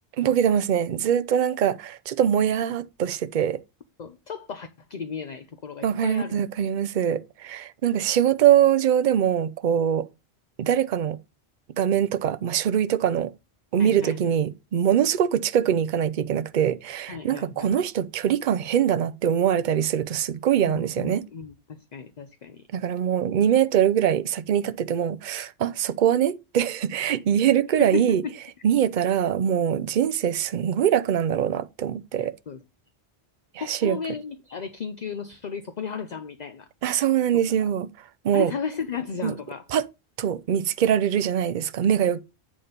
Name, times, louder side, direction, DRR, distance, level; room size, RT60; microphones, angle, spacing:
voice 1, 0.2-3.6 5.8-10.1 10.6-11.2 11.8-13.3 13.7-21.2 22.7-28.2 28.6-32.3 33.5-34.0 36.8-37.9 38.2-38.5 39.2-39.3 39.7-39.8 40.2-42.2, right 9 dB, 55° right, 0.7 m, -23 dB
voice 2, 4.0-6.4 13.8-14.2 17.1-17.7 20.6-22.6 27.8-28.4 32.2-32.6 33.6-36.7 38.3-39.6, left 6 dB, 45° left, 0.7 m, -34 dB
8.6 x 4.3 x 5.1 m
omnidirectional pair, 1.1 m